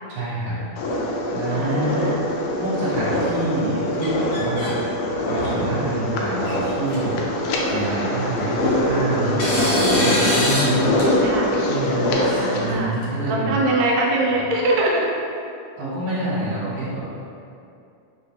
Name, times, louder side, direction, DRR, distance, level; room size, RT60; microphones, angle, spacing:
voice 1, 0.1-0.6 1.3-2.0 2.6-4.8 5.3-7.3 7.7-10.9 11.7-12.1 12.5-13.5 15.8-17.1, right 2 dB, 55° right, -10 dB, 1.3 m, -26 dB
sound 1, 0.8-12.7, left 1 dB, 85° left, 1.5 m, -23 dB
voice 2, 1.5-2.2 9.6-9.7 11.2-11.5 12.2-13.0 13.3-15.1, right 2 dB, 85° right, -2 dB, 2.2 m, -23 dB
sound 2, 4.0-4.7 5.2-5.6 6.4-6.5 6.9-7.0 8.3-8.9 9.4-10.7 11.0-11.1 12.2-13.0, left 1 dB, 60° left, 1.5 m, -26 dB
4.6 x 3.7 x 2.8 m, 2.5 s
omnidirectional pair, 3.7 m